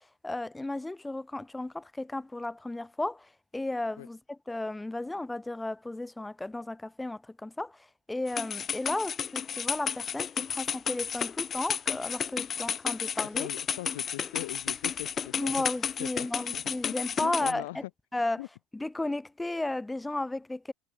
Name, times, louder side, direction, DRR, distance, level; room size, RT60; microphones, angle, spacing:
voice 1, 0.2-7.8 8.1-13.5 15.4-17.8 18.1-18.4 18.7-20.7, left 2 dB, 10° left, 5.0 m, -34 dB
sound 1, 8.3-17.5, left 7 dB, 30° left, 1.9 m, -32 dB
voice 2, 13.4-15.6 16.0-16.9 17.2-17.9 18.4-18.5, left 19 dB, 65° left, 6.7 m, -41 dB
figure-of-eight pair, 70°, 0 cm